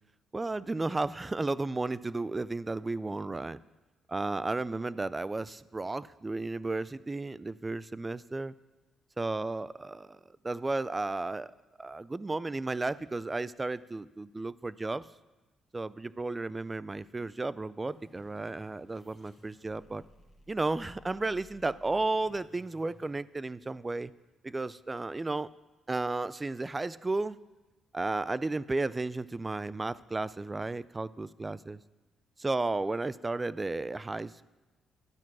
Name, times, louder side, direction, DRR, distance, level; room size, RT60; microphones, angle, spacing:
voice 1, 0.3-3.6 4.1-8.5 9.2-10.2 10.4-11.5 11.8-15.1 15.7-20.0 20.5-24.1 24.4-25.5 25.9-27.4 27.9-31.8 32.4-34.6, right 2 dB, 20° right, 19 dB, 0.4 m, -33 dB
sound 1, 17.8-23.1, left 1 dB, ahead, 3.7 m, -59 dB
12.5 x 9.2 x 6.0 m, 1.1 s
cardioid pair, 90°, 0 cm